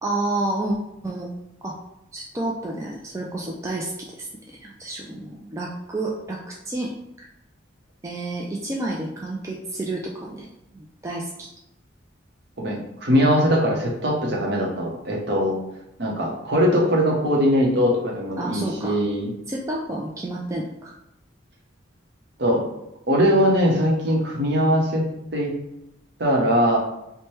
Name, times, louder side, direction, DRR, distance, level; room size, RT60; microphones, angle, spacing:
voice 1, 0.0-0.8 1.0-1.3 1.6-1.8 2.1-4.3 4.5-6.9 8.0-10.5 10.7-11.5 18.4-19.0 19.5-20.9, right 2 dB, 15° right, -3 dB, 0.3 m, -30 dB
voice 2, 12.6-15.6 16.0-19.3 22.4-22.6 23.1-25.1 25.3-25.5 26.2-26.8, equal, 55° right, 0 dB, 0.8 m, -21 dB
4.4 x 2.2 x 3.1 m, 0.85 s
head